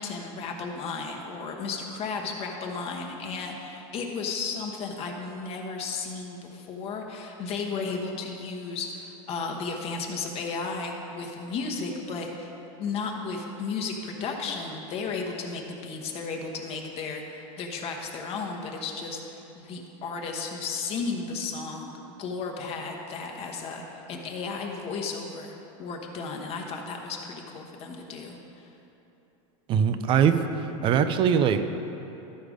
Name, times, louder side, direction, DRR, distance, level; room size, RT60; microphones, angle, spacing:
voice 1, 0.0-12.5 12.8-21.9 22.2-28.7, left 4 dB, 35° left, 2 dB, 1.1 m, -34 dB
voice 2, 29.7-31.6, right 7 dB, 30° right, 10 dB, 0.4 m, -22 dB
13.0 x 5.0 x 5.0 m, 3.0 s
supercardioid pair, 145°, 17 cm